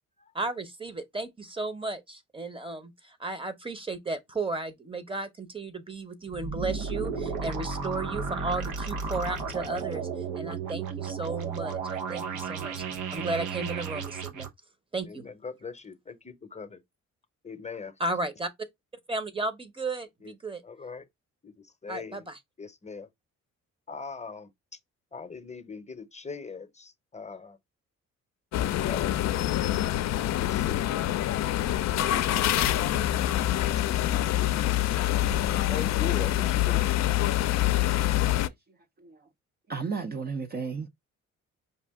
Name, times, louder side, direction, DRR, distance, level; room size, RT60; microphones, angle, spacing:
voice 1, 0.3-10.1 10.3-12.8 13.1-14.5 14.9-15.2 18.0-18.5 19.1-20.6 21.9-22.4, right 2 dB, 15° right, 0.9 m, -34 dB
sound 1, 6.3-14.5, right 5 dB, 85° right, 1.1 m, -33 dB
voice 2, 15.1-16.8 17.4-17.9 20.2-20.3 20.6-21.0 21.4-22.2 22.6-23.1 23.9-24.5 25.1-27.6 28.9-29.2 30.2-31.0 35.7-36.9, left 5 dB, 25° left, 0.7 m, -40 dB
sound 2, 28.5-38.5, left 14 dB, 60° left, 0.5 m, -26 dB
Breathing, 31.6-36.7, right 3 dB, 55° right, 2.8 m, -44 dB
voice 3, 39.0-39.3 39.7-40.9, right 5 dB, 30° right, 0.5 m, -33 dB
5.4 x 2.4 x 3.5 m
cardioid pair, 90°, 30 cm